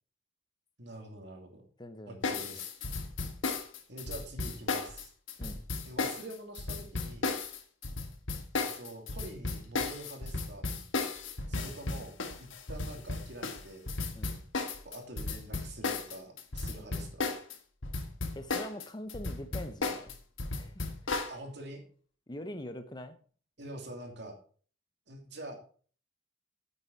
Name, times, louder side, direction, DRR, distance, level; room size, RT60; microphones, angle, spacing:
voice 1, 0.8-1.6 2.1-2.7 3.9-5.1 5.8-7.3 8.5-10.6 11.5-13.9 14.8-17.3 21.3-21.8 23.6-24.4 25.1-25.6, right 1 dB, 55° right, 2 dB, 2.7 m, -46 dB
voice 2, 1.8-2.2 5.4-5.6 14.1-14.4 18.4-20.2 20.5-20.9 22.3-23.2, left 1 dB, 20° left, 10 dB, 0.7 m, -43 dB
sound 1, 2.2-17.6 17.8-21.3, left 3 dB, 70° left, 1.5 m, -34 dB
8.8 x 8.5 x 4.5 m, 0.43 s
head